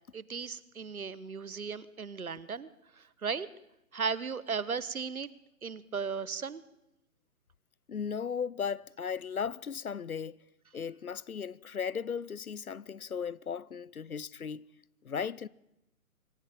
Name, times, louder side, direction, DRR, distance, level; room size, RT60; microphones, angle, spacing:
voice 1, 0.1-2.7 3.0-3.5 3.9-5.3 5.6-6.6, right 5 dB, 75° right, 1.4 m, -36 dB
voice 2, 7.9-10.4 10.7-14.7 15.0-15.5, left 6 dB, 80° left, 0.8 m, -36 dB
24.5 x 14.0 x 8.9 m
figure-of-eight pair, 135°, 43 cm